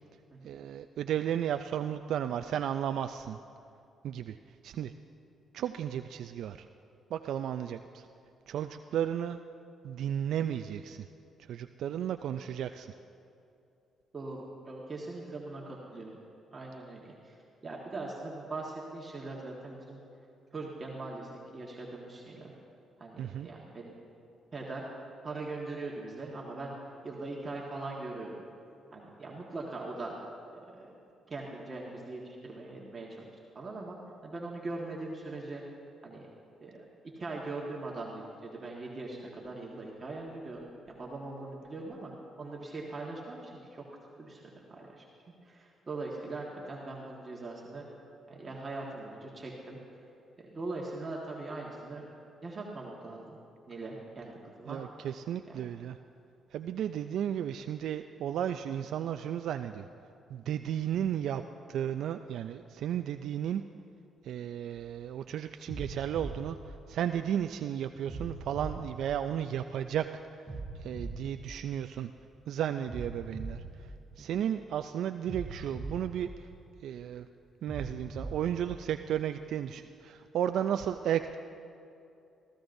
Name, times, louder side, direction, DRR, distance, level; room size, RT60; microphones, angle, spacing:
voice 1, 0.4-3.4 4.0-4.4 4.6-4.9 5.5-6.7 7.1-8.1 8.5-9.4 9.8-11.1 11.4-12.9 23.2-23.5 54.7-56.0 56.5-59.9 60.3-61.4 61.7-63.6 64.2-70.1 70.4-72.1 72.5-73.9 74.2-76.5 76.8-77.3 77.6-81.4, right 10 dB, 75° right, 8 dB, 0.3 m, -34 dB
voice 2, 14.1-16.1 16.5-17.4 17.6-20.0 20.5-22.5 23.0-23.9 24.5-24.9 25.2-26.7 27.0-28.3 28.9-30.1 30.7-31.0 31.3-33.2 33.5-35.6 36.0-36.3 36.6-36.8 37.1-42.1 42.4-43.8 44.2-44.4 44.7-45.0 45.4-47.9 48.3-49.8 50.4-52.1 52.4-53.4 53.7-54.8 55.5-55.6, right 2 dB, 35° right, -3 dB, 1.5 m, -41 dB
sound 1, 64.7-65.1 65.7-67.5 68.1-69.9 70.5-72.3 72.9-74.7 75.3-77.1 77.7-79.5, right 2 dB, 20° right, 3.7 m, -42 dB
24.0 x 14.0 x 2.6 m, 2.7 s
cardioid pair, 90°, 0 cm